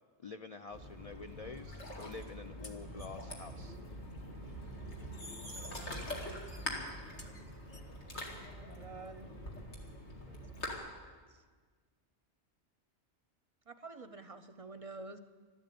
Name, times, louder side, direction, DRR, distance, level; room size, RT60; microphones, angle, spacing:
voice 1, 0.2-3.8, left 4 dB, 55° left, 8 dB, 0.4 m, -47 dB
Ocean, 0.7-10.7, left 1 dB, 80° left, 2.6 m, -44 dB
sound 1, 2.2-2.3 2.6-3.1 5.0-6.0 6.4-7.8, left 1 dB, 30° left, 1.3 m, -51 dB
voice 2, 5.5-6.1 8.5-9.3 10.3-11.4 13.7-15.2, right 3 dB, 40° right, 10 dB, 0.6 m, -50 dB
13.0 x 12.5 x 8.4 m, 1.5 s
omnidirectional pair, 1.2 m